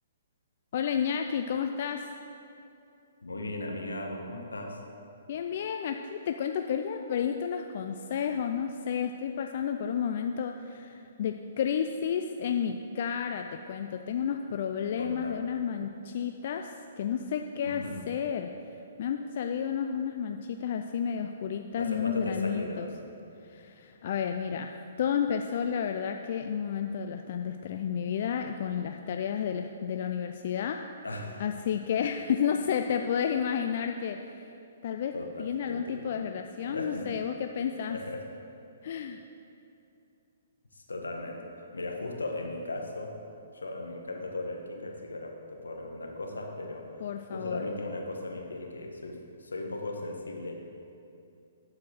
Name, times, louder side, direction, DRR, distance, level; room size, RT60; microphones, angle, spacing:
voice 1, 0.7-2.1 5.3-18.5 19.0-22.9 23.5-24.7 25.0-30.8 31.4-34.4 34.8-38.0 38.8-39.2 47.0-47.7, left 7 dB, 55° left, 5 dB, 0.4 m, -31 dB
voice 2, 3.2-4.8 15.0-15.5 17.6-18.1 21.8-23.0 31.0-31.4 35.1-36.1 36.6-37.1 37.9-38.3 40.7-41.4 41.7-43.1 43.5-46.9 47.3-50.6, left 2 dB, 85° left, 2 dB, 1.3 m, -37 dB
11.0 x 4.8 x 6.2 m, 2.7 s
hypercardioid pair, 130°, 0 cm